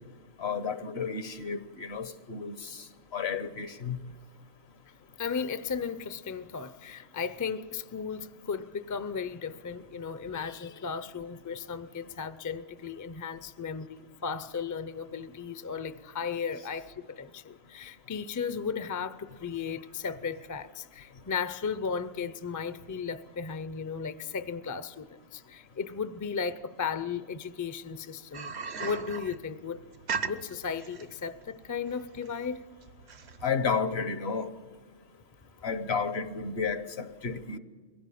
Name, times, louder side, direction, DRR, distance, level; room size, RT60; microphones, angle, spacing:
voice 1, 0.4-2.8 3.1-4.0 33.4-34.5 35.6-37.6, left 5 dB, 70° left, 1.2 m, -32 dB
voice 2, 5.2-28.5 28.8-29.8 30.2-32.6, left 6 dB, 25° left, 0.4 m, -35 dB
sound 1, 28.3-33.5, right 5 dB, 75° right, 1.1 m, -38 dB
22.5 x 16.5 x 8.6 m
omnidirectional pair, 1.1 m